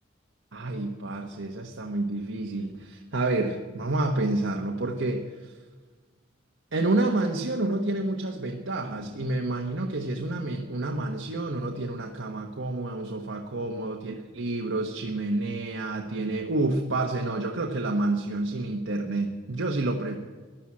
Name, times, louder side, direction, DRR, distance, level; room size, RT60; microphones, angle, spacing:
voice 1, 0.5-5.5 6.7-20.2, right 2 dB, 85° right, 1 dB, 1.3 m, -29 dB
14.5 x 11.5 x 7.5 m, 1.4 s
head